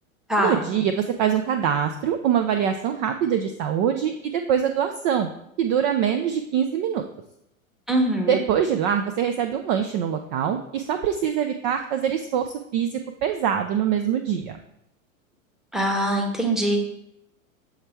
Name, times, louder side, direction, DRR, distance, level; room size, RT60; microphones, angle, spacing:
voice 1, 0.4-5.3 5.6-7.0 8.3-14.6, right 8 dB, 35° right, 7 dB, 0.4 m, -24 dB
voice 2, 7.9-8.4 15.7-16.8, right 1 dB, ahead, 2 dB, 0.9 m, -22 dB
7.3 x 3.4 x 4.4 m, 0.79 s
hypercardioid pair, 105°, 42 cm